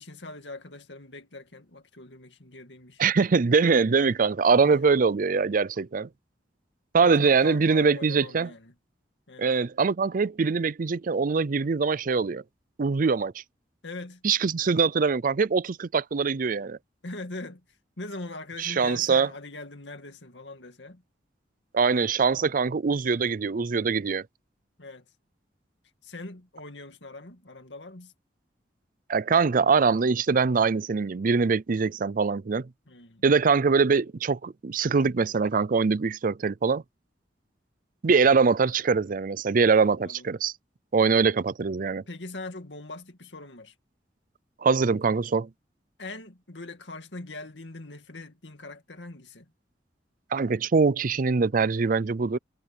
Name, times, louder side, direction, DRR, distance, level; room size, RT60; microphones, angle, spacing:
voice 1, 0.0-3.1 4.6-4.8 7.0-8.7 9.3-9.5 13.8-14.2 17.0-17.6 18.0-21.0 24.8-25.0 26.0-28.1 32.9-33.3 40.0-40.3 42.1-43.7 46.0-49.5, left 2 dB, 85° left, 2.3 m, -41 dB
voice 2, 3.0-6.1 6.9-8.5 9.4-12.4 12.8-13.4 14.2-16.8 18.6-19.3 21.7-24.2 29.1-32.7 33.2-36.8 38.0-40.5 40.9-42.0 44.6-45.5 50.3-52.4, right 5 dB, 50° right, 0.5 m, -23 dB
head